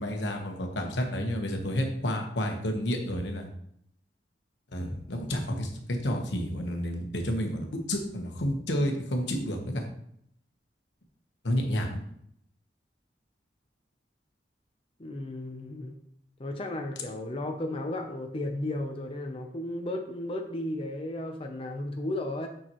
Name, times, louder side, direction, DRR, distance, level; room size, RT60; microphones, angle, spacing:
voice 1, 0.0-3.5 4.7-9.8 11.4-12.0, equal, 85° left, 3 dB, 1.2 m, -30 dB
voice 2, 15.0-16.0 16.4-22.5, left 1 dB, 30° left, 3 dB, 0.6 m, -34 dB
6.8 x 6.2 x 3.0 m, 0.70 s
head